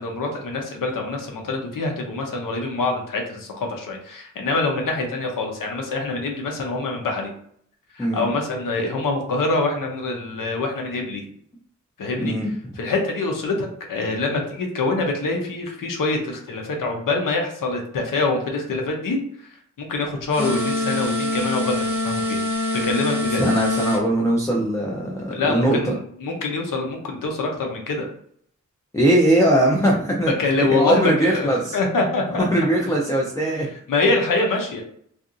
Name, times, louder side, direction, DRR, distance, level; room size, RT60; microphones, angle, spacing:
voice 1, 0.0-7.3 7.9-11.2 12.0-12.3 12.8-19.5 19.8-22.4 22.7-23.4 25.3-28.1 30.4-32.5 33.9-34.8, left 3 dB, 85° left, 2 dB, 0.7 m, -25 dB
voice 2, 12.2-12.5 23.4-26.0 28.9-30.3 30.7-31.8 32.5-33.7, right 1 dB, 10° left, -2 dB, 0.3 m, -20 dB
sound 1, 20.3-24.0, left 2 dB, 5° right, 0.7 m, -24 dB
2.8 x 2.5 x 2.4 m, 0.65 s
wide cardioid pair, 150°, 32 cm